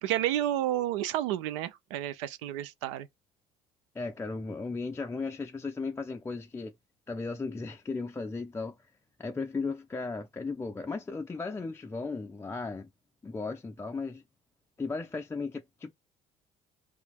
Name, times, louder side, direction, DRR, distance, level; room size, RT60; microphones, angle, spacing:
voice 1, 0.0-3.1, right 12 dB, 85° right, 0.4 m, -30 dB
voice 2, 4.0-6.7 7.1-8.8 9.2-12.9 13.2-14.2 14.8-15.9, left 4 dB, 15° left, 0.4 m, -36 dB
2.8 x 2.4 x 4.1 m
hypercardioid pair, 65°, 15 cm